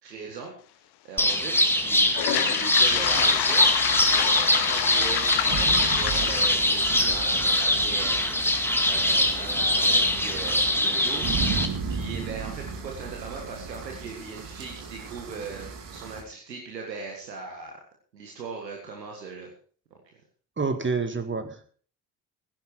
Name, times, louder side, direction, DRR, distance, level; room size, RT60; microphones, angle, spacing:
voice 1, 0.0-3.7 4.0-8.3 8.8-11.3 11.9-17.8 18.1-19.5 19.9-20.0, right 4 dB, 85° right, 1 dB, 1.8 m, -39 dB
sound 1, 1.2-11.7, left 1 dB, 5° left, 2.0 m, -23 dB
Toilet flush, 2.1-10.0, left 15 dB, 50° left, 0.8 m, -30 dB
sound 2, 2.8-16.2, right 5 dB, 55° right, 2.7 m, -36 dB
voice 2, 20.6-21.6, right 4 dB, 20° right, 8 dB, 2.0 m, -28 dB
16.0 x 11.0 x 4.6 m, 0.44 s
figure-of-eight pair, 45°, 50 cm